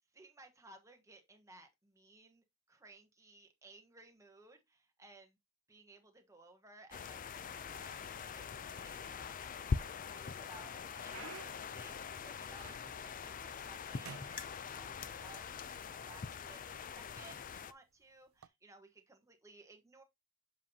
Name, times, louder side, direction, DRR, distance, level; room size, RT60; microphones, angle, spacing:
voice 1, 0.1-5.4 5.7-15.5 15.9-20.0, right 3 dB, 15° right, 1.3 m, -60 dB
sound 1, 6.9-17.7, left 5 dB, 40° left, 0.4 m, -43 dB
sound 2, 10.9-13.2 13.5-13.8 14.0-15.3 16.1-16.2 16.9-17.1 18.3-18.5, right 7 dB, 80° right, 0.5 m, -54 dB
7.4 x 5.5 x 2.8 m
head